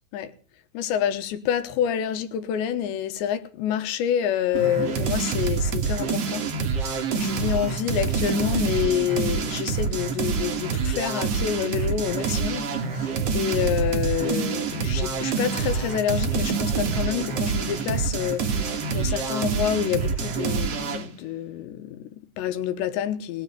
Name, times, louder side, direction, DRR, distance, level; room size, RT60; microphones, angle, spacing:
voice 1, 0.7-6.8 7.1-23.4, left 10 dB, 75° left, 3.1 m, -28 dB
sound 1, 4.5-21.1, right 5 dB, 75° right, 1.4 m, -26 dB
19.5 x 7.0 x 9.2 m
omnidirectional pair, 5.5 m